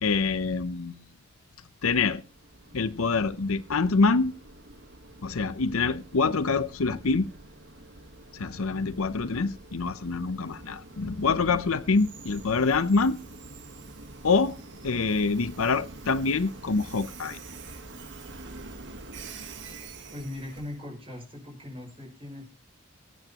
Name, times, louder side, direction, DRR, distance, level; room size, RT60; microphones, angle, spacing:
voice 1, 0.0-0.9 1.8-2.2 2.7-4.3 5.2-7.3 8.3-13.2 14.2-14.6 14.8-17.4, left 4 dB, 75° left, 0.7 m, -25 dB
Train, 2.1-20.9, right 3 dB, 55° right, 1.4 m, -46 dB
voice 2, 20.1-22.5, left 1 dB, 25° right, 6.2 m, -39 dB
23.5 x 9.0 x 3.0 m
head